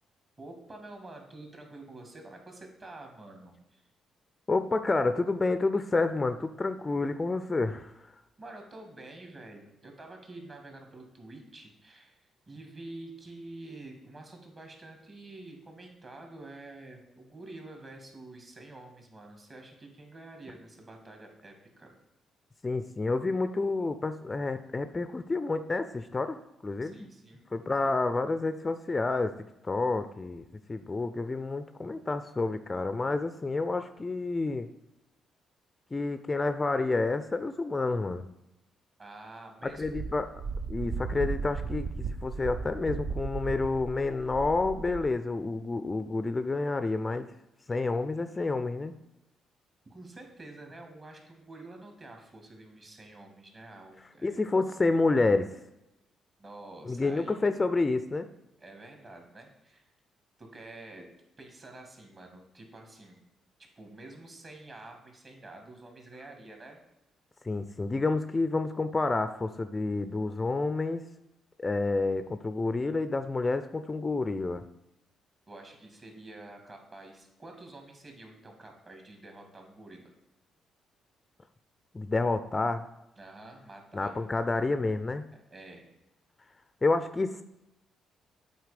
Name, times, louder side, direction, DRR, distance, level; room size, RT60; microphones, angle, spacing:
voice 1, 0.4-3.8 8.4-21.9 26.8-27.5 27.8-27.9 39.0-40.0 49.9-54.4 56.4-57.4 58.6-59.9 60.4-61.1 61.4-63.2 63.8-66.8 75.5-80.1 83.2-84.2 85.5-85.9, right 2 dB, 35° right, 3 dB, 2.0 m, -48 dB
voice 2, 4.5-8.1 22.6-27.1 27.5-29.3 29.6-34.7 35.9-38.3 39.8-40.3 40.7-47.3 47.7-48.9 54.2-55.5 56.8-58.3 67.4-71.0 71.6-74.6 81.9-82.9 83.9-85.2 86.8-87.4, left 3 dB, 25° left, 10 dB, 0.4 m, -29 dB
Wind, 39.8-45.1, right 4 dB, 65° right, 0.6 m, -36 dB
8.0 x 4.2 x 5.0 m, 0.89 s
cardioid pair, 90°, 0 cm